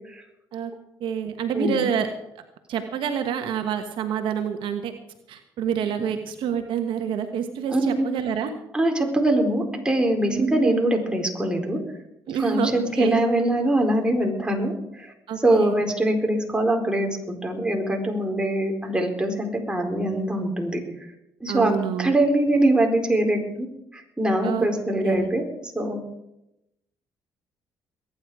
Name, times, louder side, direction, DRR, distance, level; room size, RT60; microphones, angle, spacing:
voice 1, 1.0-2.1 2.7-4.9 5.3-8.5 10.2-10.8 12.3-13.2 15.3-15.7 21.5-22.2 24.4-24.7 25.0-25.3, right 8 dB, 70° right, 7 dB, 1.3 m, -27 dB
voice 2, 1.5-1.9 7.7-8.0 8.7-11.8 12.4-15.1 15.4-20.8 21.4-21.7 22.0-23.7 23.9-26.0, right 1 dB, 10° right, 2 dB, 4.4 m, -23 dB
22.0 x 9.9 x 4.9 m, 0.84 s
supercardioid pair, 65°, 9 cm